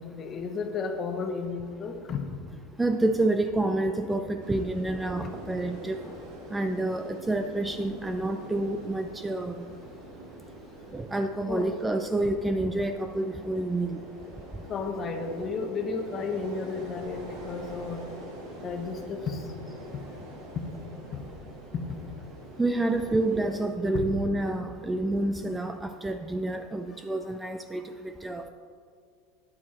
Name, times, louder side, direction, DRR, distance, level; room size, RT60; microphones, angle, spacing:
voice 1, 0.0-2.2 5.2-5.3 6.0-6.2 11.5-11.7 14.7-18.1 18.6-19.5 20.5-20.6 21.7-22.0 23.9-24.1 26.9-27.1 27.8-27.9, left 4 dB, 30° left, 5 dB, 1.1 m, -33 dB
voice 2, 2.8-6.0 6.5-9.6 10.9-14.0 22.6-27.9 28.2-28.5, right 2 dB, 10° right, 7 dB, 0.4 m, -28 dB
sound 1, 4.4-23.7, right 1 dB, 60° right, 2.3 m, -44 dB
9.9 x 7.6 x 4.3 m, 2.1 s
supercardioid pair, 120°, 0 cm